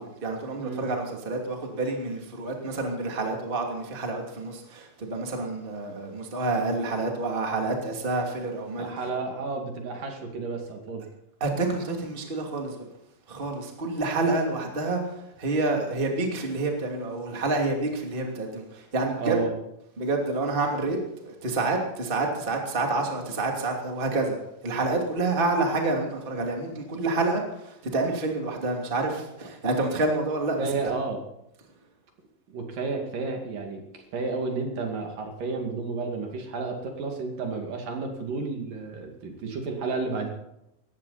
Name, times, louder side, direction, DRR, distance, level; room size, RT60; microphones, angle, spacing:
voice 1, 0.0-8.9 11.4-12.9 13.3-19.4 20.0-21.0 21.2-24.4 24.6-30.9, right 3 dB, 15° right, 1 dB, 2.4 m, -28 dB
voice 2, 8.8-11.1 19.2-19.6 30.6-31.2 32.5-40.3, right 4 dB, 65° right, 2 dB, 3.9 m, -31 dB
19.5 x 15.5 x 4.2 m, 0.81 s
omnidirectional pair, 4.3 m